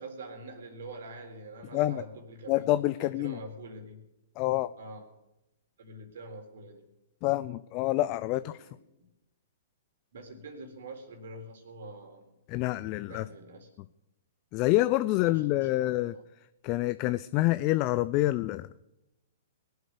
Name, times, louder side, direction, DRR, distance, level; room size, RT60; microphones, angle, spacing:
voice 1, 0.0-4.0 4.8-5.1 5.8-6.8 8.3-9.1 10.1-12.3 13.1-13.7 15.1-16.2, right 2 dB, 65° right, 5 dB, 3.9 m, -45 dB
voice 2, 2.5-3.4 4.4-4.7 7.2-8.5 12.5-13.2 14.5-16.1 16.6-18.7, left 17 dB, 40° left, 14 dB, 0.5 m, -27 dB
21.5 x 8.1 x 6.7 m, 0.93 s
hypercardioid pair, 120°, 0 cm